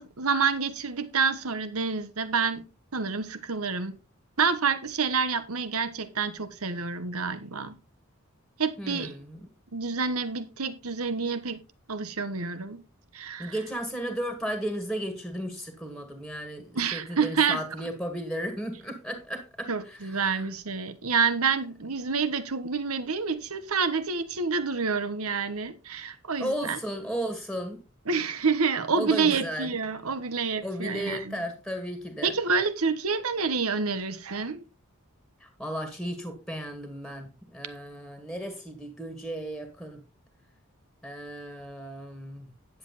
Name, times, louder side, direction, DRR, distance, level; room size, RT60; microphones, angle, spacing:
voice 1, 0.0-2.6 2.9-4.0 4.4-7.8 8.6-9.2 9.7-11.6 11.9-12.8 13.1-13.5 16.7-17.6 19.7-26.8 28.1-31.4 32.2-34.6, right 5 dB, 85° right, 1.2 m, -28 dB
voice 2, 8.8-9.4 13.4-19.7 26.4-27.8 28.9-29.7 30.6-32.3 35.4-40.0 41.0-42.5, equal, ahead, 1.8 m, -34 dB
10.0 x 7.6 x 4.1 m
head